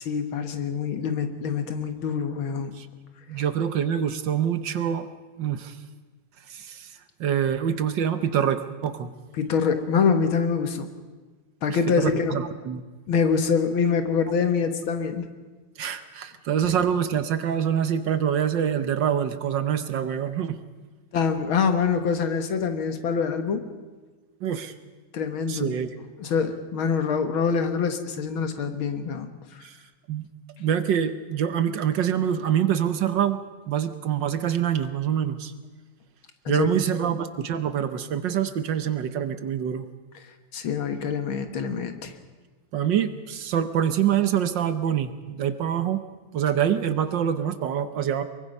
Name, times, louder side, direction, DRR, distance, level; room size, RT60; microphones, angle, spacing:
voice 1, 0.0-2.8 9.4-10.9 11.6-12.4 13.1-15.3 21.1-23.7 25.1-25.7 26.2-29.3 36.5-36.7 40.5-42.1, left 6 dB, 75° left, 8 dB, 2.2 m, -25 dB
voice 2, 3.3-5.1 5.4-5.8 6.5-9.1 11.7-12.8 15.8-20.6 24.4-24.7 25.5-25.9 29.6-29.8 30.1-30.3 30.6-33.4 33.7-35.5 36.5-39.8 42.7-46.0 46.3-48.2, right 9 dB, 65° right, 11 dB, 1.6 m, -25 dB
23.5 x 22.5 x 5.4 m, 1.3 s
omnidirectional pair, 2.3 m